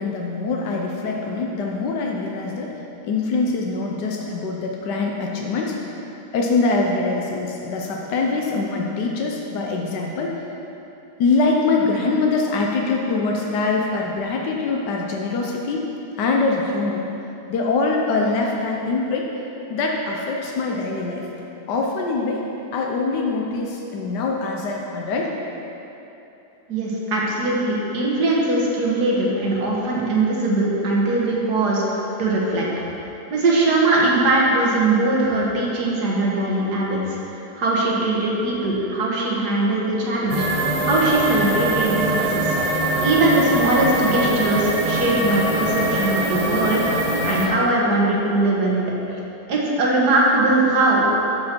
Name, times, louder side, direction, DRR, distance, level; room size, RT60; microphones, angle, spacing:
voice 1, 0.0-2.7 3.1-5.8 6.3-10.4 11.2-15.8 16.2-17.1 17.5-19.3 19.7-21.3 21.7-22.4 22.7-25.3, left 3 dB, 85° left, 0 dB, 1.5 m, -23 dB
voice 2, 26.7-32.7 33.3-46.8 47.2-48.8 49.1-49.2 49.5-51.1, right 2 dB, 75° right, -3 dB, 2.0 m, -21 dB
sound 1, 40.3-47.5, right 1 dB, 30° right, 0.8 m, -22 dB
12.0 x 6.7 x 4.5 m, 3.0 s
omnidirectional pair, 1.8 m